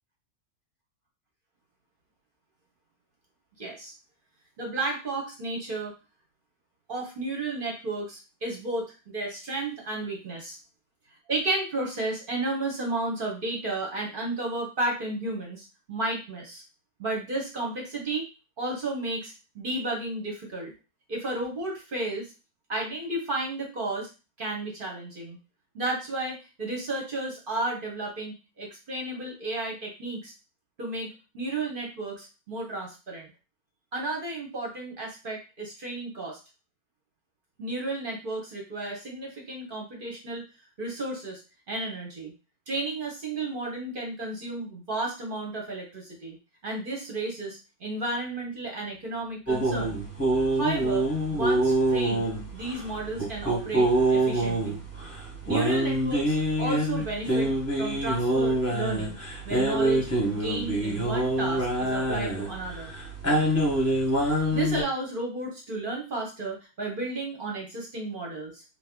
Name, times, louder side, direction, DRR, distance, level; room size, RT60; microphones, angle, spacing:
voice 1, 3.6-3.9 4.6-5.9 6.9-10.6 11.3-16.6 17.0-18.3 18.6-20.7 21.1-22.3 22.7-24.1 24.4-25.4 25.7-30.3 30.8-33.3 33.9-36.4 37.6-40.5 40.8-41.4 41.7-42.3 42.7-46.4 46.6-50.0 50.5-51.0 51.3-54.8 55.5-57.5 57.8-59.2 59.4-62.9 64.2-68.6, right 2 dB, 45° right, -1 dB, 0.8 m, -33 dB
sound 1, 49.5-64.8, right 1 dB, 10° left, 0.8 m, -26 dB
2.8 x 2.2 x 3.6 m, 0.31 s
omnidirectional pair, 1.6 m